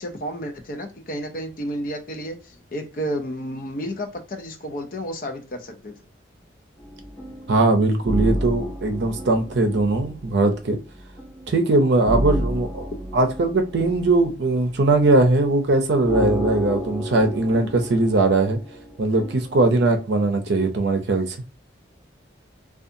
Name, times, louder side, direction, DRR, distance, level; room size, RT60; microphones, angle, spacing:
voice 1, 0.0-5.9 12.9-13.0, equal, 45° left, 0.5 m, -31 dB
sound 1, 6.8-20.0, equal, 25° left, 1.2 m, -32 dB
voice 2, 7.5-10.8 11.5-18.6 19.0-21.4, right 2 dB, 65° right, 0.5 m, -20 dB
2.6 x 2.3 x 2.6 m
head